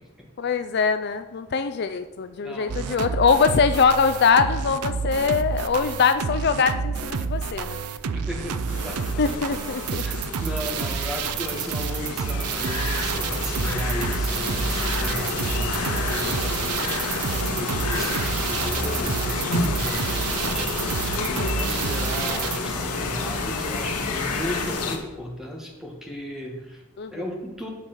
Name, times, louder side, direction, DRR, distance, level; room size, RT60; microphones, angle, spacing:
voice 1, 0.4-7.8 9.2-10.0 18.0-18.2 21.2-21.6 27.0-27.3, left 5 dB, 45° left, 9 dB, 0.4 m, -23 dB
voice 2, 2.4-3.2 8.1-9.4 10.0-17.1 17.5-26.8 27.1-27.7, equal, ahead, 0 dB, 1.4 m, -36 dB
sound 1, 2.7-22.6, right 6 dB, 85° right, 0.5 m, -29 dB
sound 2, 8.7-25.0, left 3 dB, 90° left, 1.5 m, -29 dB
8.8 x 5.5 x 6.6 m, 1.1 s
head